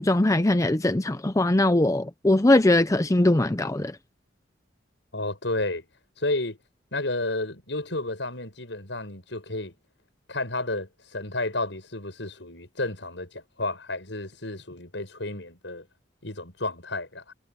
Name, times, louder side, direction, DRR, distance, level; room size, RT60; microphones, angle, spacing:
voice 1, 0.0-4.0, left 1 dB, 15° left, 0.6 m, -21 dB
voice 2, 5.1-5.9 6.2-6.6 6.9-9.7 10.3-15.9 16.2-17.3, left 2 dB, 75° left, 7.2 m, -31 dB
head